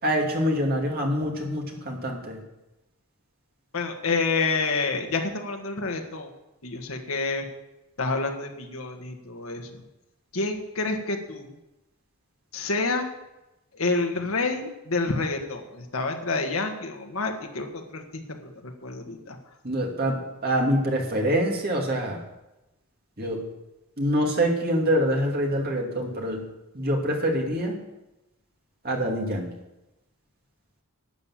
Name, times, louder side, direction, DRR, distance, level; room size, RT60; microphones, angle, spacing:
voice 1, 0.0-2.4 19.6-22.2 23.2-23.4 24.0-26.5 26.7-27.8 28.8-29.5, equal, 45° right, 0 dB, 2.5 m, -25 dB
voice 2, 3.7-6.3 6.6-7.4 8.0-9.8 10.3-11.5 12.5-13.1 13.7-18.5 18.8-19.4, left 3 dB, 70° left, 4 dB, 1.6 m, -28 dB
12.0 x 8.7 x 7.6 m, 0.97 s
head